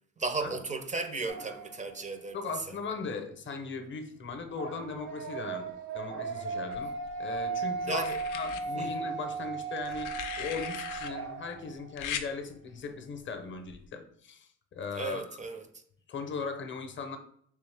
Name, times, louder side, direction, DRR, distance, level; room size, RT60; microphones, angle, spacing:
voice 1, 0.2-2.4 2.7-2.8 7.8-8.2 8.8-8.9 14.9-15.8, right 3 dB, 25° right, 0.4 m, -35 dB
sound 1, 1.3-2.1 4.5-11.9, right 4 dB, 80° right, 1.0 m, -36 dB
voice 2, 2.3-6.9 7.2-15.4 16.1-17.2, left 4 dB, 40° left, 0.6 m, -38 dB
sound 2, 6.7-7.4 8.0-8.6 9.8-11.1 12.0-12.3 13.7-13.9, left 8 dB, 85° left, 0.5 m, -38 dB
3.4 x 3.2 x 3.3 m
cardioid pair, 90°, 30 cm